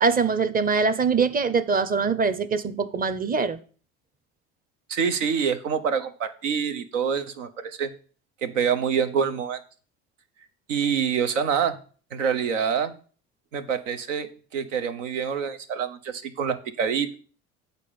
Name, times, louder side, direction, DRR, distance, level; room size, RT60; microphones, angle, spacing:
voice 1, 0.0-3.6, right 5 dB, 25° right, 13 dB, 0.8 m, -23 dB
voice 2, 4.9-7.9 8.4-9.6 10.7-11.8 12.1-12.9 13.5-17.1, right 7 dB, 80° right, 10 dB, 0.9 m, -26 dB
8.3 x 3.9 x 6.9 m, 0.40 s
hypercardioid pair, 70°, 37 cm